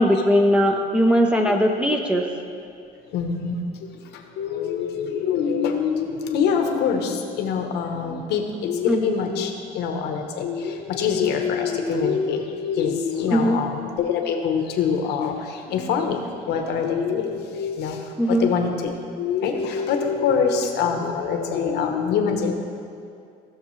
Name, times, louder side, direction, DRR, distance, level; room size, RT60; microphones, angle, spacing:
voice 1, 0.0-2.3 8.9-9.0 13.3-13.6 18.2-18.5, equal, 5° right, 2 dB, 0.6 m, -19 dB
voice 2, 3.1-22.5, left 6 dB, 80° left, 4 dB, 1.0 m, -25 dB
16.0 x 6.5 x 3.2 m, 2.4 s
cardioid pair, 110°, 17 cm